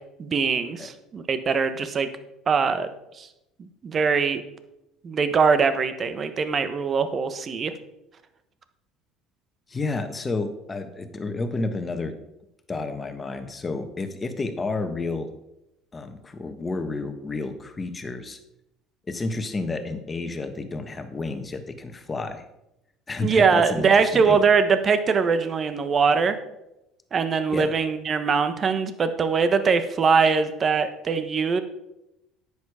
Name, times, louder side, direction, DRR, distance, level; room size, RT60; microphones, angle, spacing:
voice 1, 0.2-2.1 2.5-2.9 3.2-3.3 3.6-4.4 5.0-7.7 23.2-26.3 27.1-31.6, right 5 dB, 40° right, 10 dB, 1.2 m, -22 dB
voice 2, 9.7-12.1 12.7-15.3 15.9-18.4 19.1-22.4 23.1-24.4 27.5-27.7, left 3 dB, 25° left, 7 dB, 1.5 m, -30 dB
10.5 x 8.4 x 5.0 m, 0.89 s
supercardioid pair, 90°, 0 cm